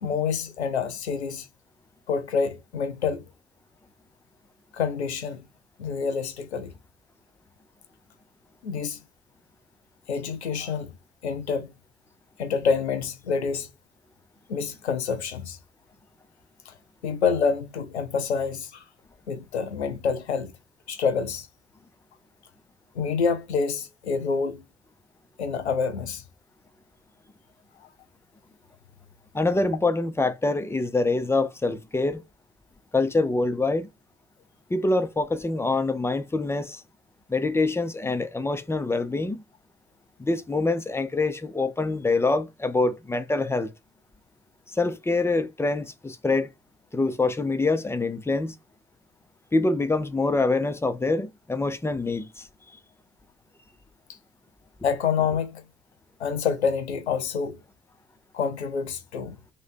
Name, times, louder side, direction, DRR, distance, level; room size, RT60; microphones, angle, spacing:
voice 1, 0.0-1.5 2.1-3.2 4.7-5.5 5.8-6.7 8.6-9.0 10.1-10.9 11.2-11.7 12.4-13.7 14.5-15.6 16.7-16.8 17.0-18.8 19.3-20.5 20.9-21.5 22.9-24.6 25.4-26.2 54.8-55.6 56.2-57.6 58.3-59.4, left 6 dB, 85° left, 0.5 m, -27 dB
voice 2, 29.3-32.2 32.9-33.9 34.7-36.8 37.3-39.4 40.2-43.7 44.7-46.5 46.9-48.5 49.5-52.5, left 3 dB, 10° left, 0.5 m, -25 dB
3.1 x 2.7 x 3.5 m
figure-of-eight pair, 45°, 32 cm